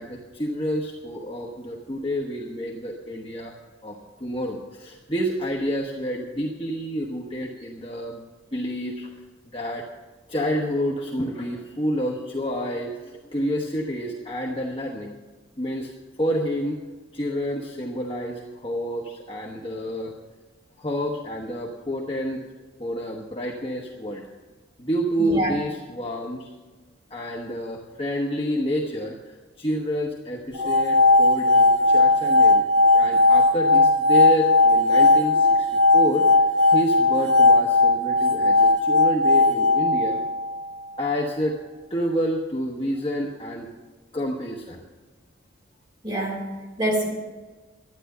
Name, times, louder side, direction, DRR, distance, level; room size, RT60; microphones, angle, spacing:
voice 1, 0.0-3.5 3.8-8.2 8.5-9.1 9.5-9.8 10.3-15.2 15.6-15.9 16.2-16.8 17.1-20.1 20.8-22.4 22.8-24.2 24.8-26.5 27.1-32.7 32.9-40.2 41.0-41.5 41.9-43.7 44.1-44.8, equal, 30° left, -2 dB, 1.1 m, -29 dB
voice 2, 25.2-25.5 46.0-47.1, right 1 dB, 25° right, -1 dB, 3.7 m, -26 dB
sound 1, 30.5-40.7, left 2 dB, 55° right, 2.8 m, -18 dB
12.5 x 10.0 x 6.7 m, 1.3 s
head